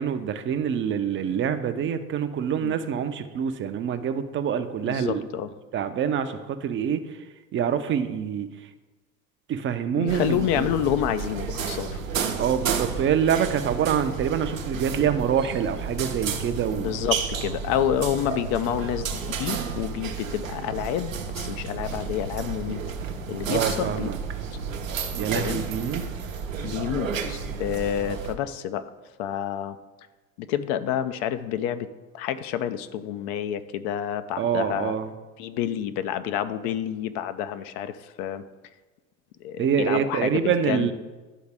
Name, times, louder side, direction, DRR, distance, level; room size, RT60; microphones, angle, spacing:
voice 1, 0.0-5.2 5.7-7.3 7.5-8.5 9.5-10.7 12.4-17.0 23.5-24.2 25.2-26.0 34.4-35.1 39.6-40.9, right 8 dB, 30° right, 9 dB, 0.5 m, -26 dB
voice 2, 4.8-5.5 10.0-12.0 16.8-22.8 23.3-24.1 25.3-25.6 26.6-28.9 29.2-29.8 30.4-31.9 32.1-34.9 35.4-38.4 39.4-40.9, left 10 dB, 55° left, 11 dB, 0.5 m, -28 dB
sound 1, 10.1-28.3, right 6 dB, 90° right, 0.7 m, -32 dB
11.0 x 3.9 x 3.5 m, 1.2 s
hypercardioid pair, 75°, 39 cm